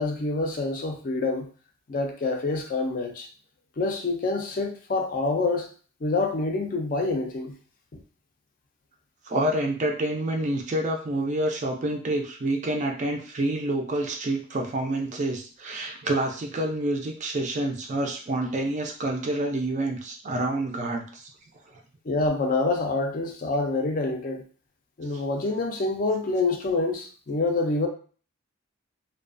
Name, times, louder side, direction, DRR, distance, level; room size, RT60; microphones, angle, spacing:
voice 1, 0.0-1.5 1.9-3.3 3.8-5.7 6.0-7.5 22.1-24.4 25.0-27.9, left 3 dB, 40° left, 3 dB, 0.4 m, -26 dB
voice 2, 9.3-21.3 25.1-25.2, right 1 dB, 35° right, 2 dB, 0.3 m, -28 dB
2.3 x 2.1 x 2.4 m, 0.40 s
head